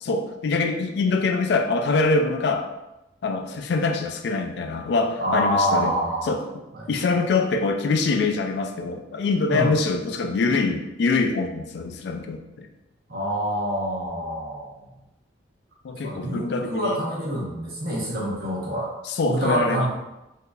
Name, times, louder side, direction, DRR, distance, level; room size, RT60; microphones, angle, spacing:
voice 1, 0.0-2.6 3.2-6.0 6.2-12.7 15.8-17.0 19.0-19.9, left 3 dB, 60° left, 4 dB, 0.3 m, -24 dB
voice 2, 5.2-6.3 6.7-6.9 9.5-9.7 13.1-14.9 16.0-18.9 19.3-19.9, equal, 50° right, -5 dB, 1.0 m, -26 dB
3.7 x 2.7 x 2.3 m, 0.96 s
head